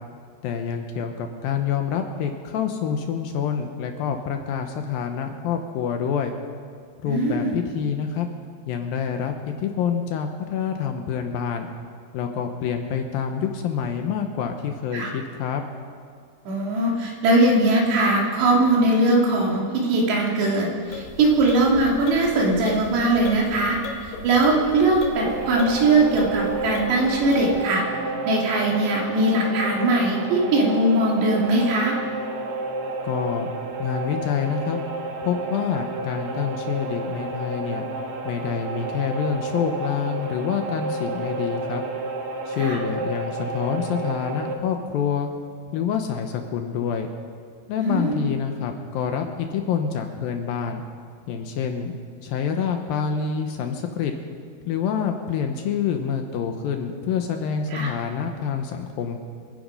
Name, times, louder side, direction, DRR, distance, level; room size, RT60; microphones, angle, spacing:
voice 1, 0.4-6.3 7.0-8.3 8.7-11.7 12.1-15.6 33.0-33.5 33.8-34.8 35.2-37.9 38.3-41.8 42.5-45.3 45.7-47.1 47.7-50.8 51.3-51.9 52.2-54.1 54.7-59.2, left 7 dB, 75° left, 5 dB, 2.3 m, -27 dB
voice 2, 7.0-7.5 14.9-15.1 16.5-23.8 24.0-27.8 28.3-32.0 42.6-42.8 47.8-48.3 57.7-57.9, right 2 dB, 85° right, -2 dB, 4.6 m, -20 dB
sound 1, 20.8-27.7, left 4 dB, 90° left, 4.1 m, -37 dB
sound 2, 25.1-44.5, right 2 dB, 60° right, 1.9 m, -31 dB
26.5 x 9.3 x 5.4 m, 2.1 s
omnidirectional pair, 4.8 m